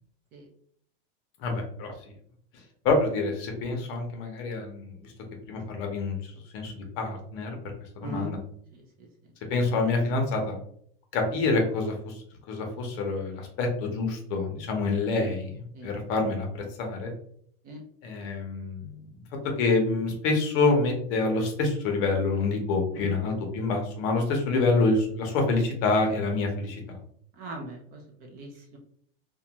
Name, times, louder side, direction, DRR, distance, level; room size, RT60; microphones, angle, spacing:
voice 1, 1.4-1.9 2.8-5.1 5.5-6.2 6.5-7.6 8.0-8.4 9.5-10.6 11.1-12.1 12.5-15.5 15.8-16.5 16.8-17.1 18.0-19.1 19.6-26.8, left 3 dB, 45° left, 2 dB, 0.7 m, -27 dB
voice 2, 27.4-28.0 28.3-28.8, right 1 dB, 30° right, 1 dB, 0.4 m, -38 dB
2.5 x 2.2 x 2.9 m, 0.64 s
supercardioid pair, 150°, 30 cm